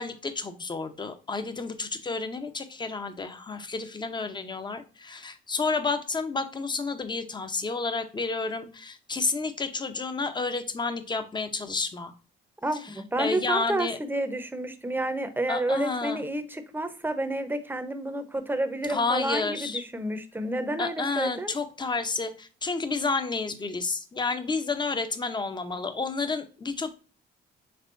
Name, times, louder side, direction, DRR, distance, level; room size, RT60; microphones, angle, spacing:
voice 1, 0.0-12.1 13.2-14.0 15.5-16.2 18.9-19.8 20.8-26.9, left 4 dB, 20° left, 0.7 m, -30 dB
voice 2, 12.6-21.5, right 1 dB, 10° right, 0.8 m, -30 dB
5.4 x 3.6 x 2.5 m
cardioid pair, 90°, 20 cm